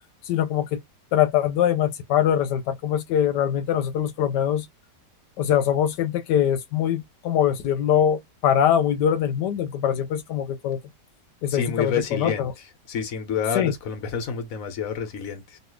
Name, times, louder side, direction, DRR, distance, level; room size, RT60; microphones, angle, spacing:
voice 1, 0.2-0.8 1.1-4.7 5.4-10.8 11.4-12.5 13.5-13.7, left 9 dB, 85° left, 1.2 m, -23 dB
voice 2, 11.5-12.4 12.9-15.6, left 7 dB, 55° left, 1.3 m, -28 dB
3.2 x 2.4 x 3.1 m
omnidirectional pair, 1.8 m